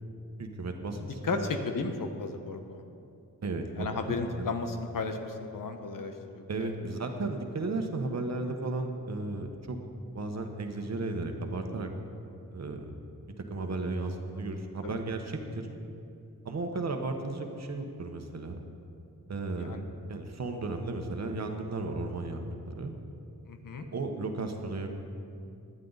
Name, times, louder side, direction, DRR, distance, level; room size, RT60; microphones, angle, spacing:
voice 1, 0.4-1.5 3.4-3.9 4.4-4.5 6.5-9.8 10.1-11.9 12.5-12.9 13.5-15.7 16.4-18.6 19.3-19.8 20.1-22.9 23.9-24.9, right 3 dB, 50° right, 4 dB, 1.3 m, -34 dB
voice 2, 1.0-2.8 3.8-6.7 14.8-15.0 19.6-19.8 23.5-23.8, left 4 dB, 70° left, 6 dB, 1.1 m, -34 dB
17.0 x 11.0 x 4.1 m, 2.6 s
wide cardioid pair, 115°, 34 cm